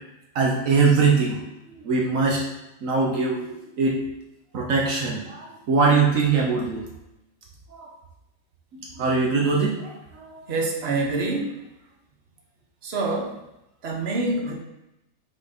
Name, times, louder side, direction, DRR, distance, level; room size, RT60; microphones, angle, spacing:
voice 1, 0.3-1.4 1.6-2.4 2.8-4.0 4.5-6.8 7.7-7.9 8.7-10.4, right 4 dB, 75° right, -2 dB, 1.3 m, -22 dB
voice 2, 10.5-11.6 12.8-13.3 13.8-14.5, right 2 dB, 50° right, -1 dB, 1.3 m, -26 dB
5.9 x 4.2 x 4.1 m, 0.91 s
omnidirectional pair, 1.4 m